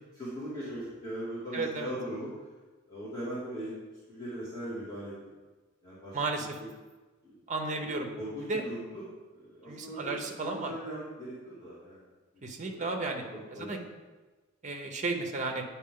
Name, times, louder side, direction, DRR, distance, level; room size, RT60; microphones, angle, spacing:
voice 1, 0.1-2.3 2.9-3.7 4.1-5.1 5.8-6.2 7.2-7.3 8.2-9.0 9.3-12.0 12.6-13.7, equal, 20° left, -13 dB, 2.3 m, -39 dB
voice 2, 1.5-1.9 6.1-6.5 7.5-8.1 8.5-8.6 9.7-10.7 12.4-13.2 13.5-13.8 14.6-15.6, right 3 dB, 35° right, 3 dB, 0.7 m, -33 dB
8.7 x 4.4 x 3.7 m, 1.3 s
head